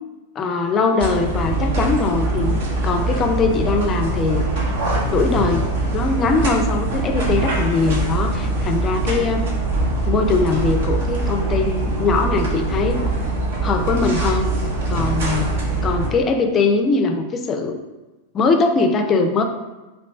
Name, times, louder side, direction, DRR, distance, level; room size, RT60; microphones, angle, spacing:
voice 1, 0.4-2.6 2.8-4.4 5.1-9.5 10.0-13.0 13.6-14.5 14.9-15.5 15.8-17.8 18.3-19.4, left 4 dB, 25° left, 6 dB, 0.4 m, -21 dB
sound 1, 1.0-16.1, right 2 dB, 55° right, 0.9 m, -22 dB
3.0 x 3.0 x 4.2 m, 1.1 s
figure-of-eight pair, 90°, 0 cm